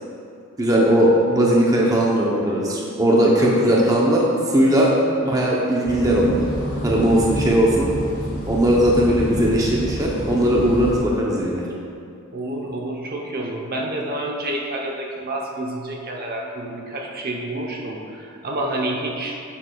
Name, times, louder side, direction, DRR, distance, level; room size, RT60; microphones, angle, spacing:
voice 1, 0.6-4.9 5.2-6.4 6.8-7.9 8.5-11.6, right 1 dB, 15° right, -3 dB, 0.7 m, -18 dB
sound 1, 5.8-11.0, equal, 70° left, 1.6 m, -28 dB
voice 2, 12.3-19.4, right 1 dB, 45° right, -1 dB, 0.8 m, -29 dB
8.4 x 7.4 x 2.3 m, 2.5 s
head